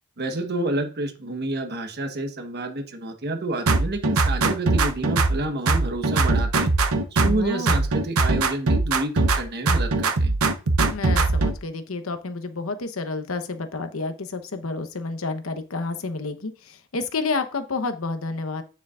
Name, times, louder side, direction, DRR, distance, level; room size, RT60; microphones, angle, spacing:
voice 1, 0.2-6.7 7.2-10.4, right 2 dB, 50° right, 6 dB, 1.2 m, -29 dB
sound 1, 3.7-5.4 5.7-7.4 7.7-9.4 9.7-11.5, right 3 dB, 85° right, 0.8 m, -21 dB
voice 2, 7.2-7.8 10.9-18.6, left 3 dB, 70° left, 8 dB, 1.0 m, -30 dB
9.1 x 7.0 x 2.5 m, 0.38 s
head